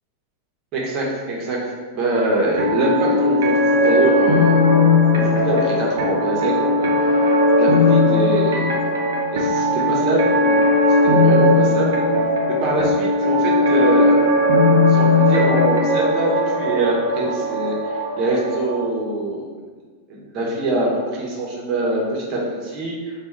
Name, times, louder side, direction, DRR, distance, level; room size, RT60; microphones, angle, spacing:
voice 1, 0.7-1.6 1.9-4.5 5.2-7.2 7.6-8.7 9.3-10.6 11.0-12.0 12.5-14.1 14.9-19.4 20.1-23.1, right 2 dB, 35° right, -3 dB, 1.1 m, -24 dB
sound 1, 2.4-18.9, left 2 dB, 60° right, 0.7 m, -18 dB
3.4 x 2.5 x 4.5 m, 1.4 s
figure-of-eight pair, 90°, 0 cm